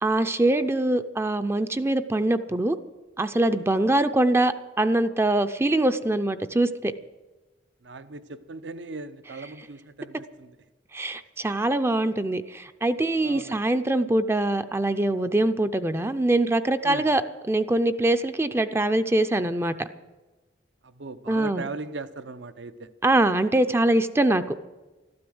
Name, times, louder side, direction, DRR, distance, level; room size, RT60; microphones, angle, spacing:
voice 1, 0.0-2.8 3.2-6.9 10.9-17.2 17.5-19.9 21.3-21.7 23.0-24.7, right 1 dB, 15° right, 10 dB, 0.5 m, -23 dB
voice 2, 7.8-10.6 13.2-13.6 16.8-17.1 20.8-22.9, right 3 dB, 75° right, 13 dB, 0.7 m, -38 dB
13.0 x 12.5 x 7.8 m, 1.2 s
head